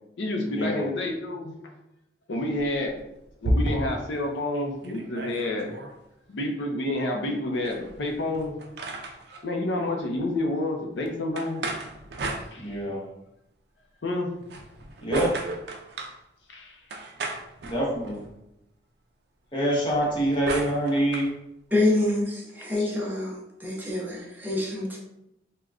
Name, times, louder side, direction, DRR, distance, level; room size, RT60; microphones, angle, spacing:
voice 1, 0.2-1.5 2.3-3.0 3.4-5.7 6.3-8.9 9.4-11.7 12.5-12.8 14.0-14.3 16.5-16.8 22.8-22.9, left 1 dB, 85° left, 2 dB, 0.5 m, -29 dB
sound 1, 2.6-4.1 4.6-4.7 4.8-5.9 7.6-9.4 11.4-13.0 14.4-16.2 16.9-18.3 19.8-21.3, right 2 dB, 65° right, 0.4 m, -33 dB
voice 2, 12.6-13.0 15.0-15.4 17.6-18.2 19.5-21.3, right 1 dB, 25° left, -4 dB, 0.8 m, -25 dB
voice 3, 21.7-25.0, left 2 dB, 10° right, -3 dB, 0.6 m, -26 dB
3.5 x 2.2 x 2.4 m, 0.84 s
head